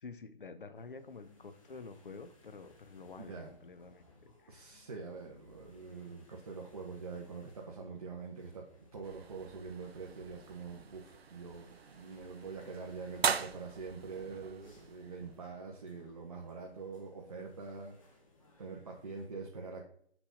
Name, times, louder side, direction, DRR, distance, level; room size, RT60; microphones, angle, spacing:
voice 1, 0.0-4.7, left 4 dB, 55° left, 0.7 m, -49 dB
sound 1, 0.7-19.3, left 2 dB, 30° left, 1.5 m, -64 dB
voice 2, 3.2-3.5 4.5-18.2 18.6-19.8, right 4 dB, 35° right, 0.9 m, -45 dB
sound 2, 9.0-15.5, right 6 dB, 70° right, 0.6 m, -40 dB
5.9 x 5.7 x 3.8 m
figure-of-eight pair, 165°, 32 cm